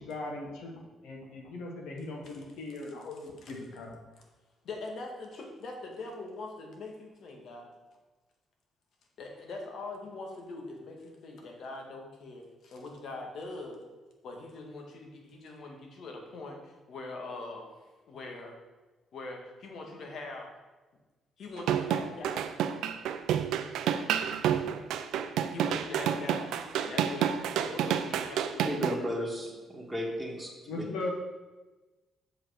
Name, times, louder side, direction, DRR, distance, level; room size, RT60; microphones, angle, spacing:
voice 1, 0.0-3.9 30.7-31.1, left 2 dB, 85° left, 0 dB, 1.5 m, -39 dB
voice 2, 4.6-7.7 9.2-13.8 14.2-17.8 18.1-18.5 19.1-20.5 21.4-22.5 24.4-24.5 25.5-28.8, left 2 dB, 65° left, 1 dB, 1.7 m, -42 dB
sound 1, 21.6-28.9, right 9 dB, 85° right, 0.4 m, -29 dB
voice 3, 28.6-30.9, equal, 5° right, -4 dB, 1.9 m, -34 dB
7.0 x 5.4 x 5.0 m, 1.2 s
cardioid pair, 90°, 0 cm